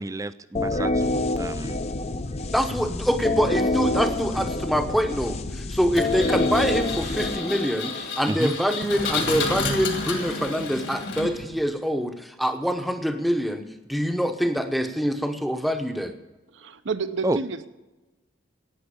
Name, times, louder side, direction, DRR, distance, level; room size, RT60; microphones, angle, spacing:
voice 1, 0.0-1.8 8.3-8.5 17.2-17.4, right 2 dB, 15° right, 15 dB, 0.3 m, -29 dB
sound 1, 0.5-8.2, left 2 dB, 30° left, 0.6 m, -27 dB
voice 2, 2.5-13.6 13.9-16.1, equal, ahead, 7 dB, 0.8 m, -25 dB
Engine, 5.9-11.6, left 3 dB, 65° left, 2.1 m, -31 dB
voice 3, 16.5-17.7, right 4 dB, 65° right, 11 dB, 0.7 m, -30 dB
11.5 x 9.2 x 8.3 m, 1.2 s
head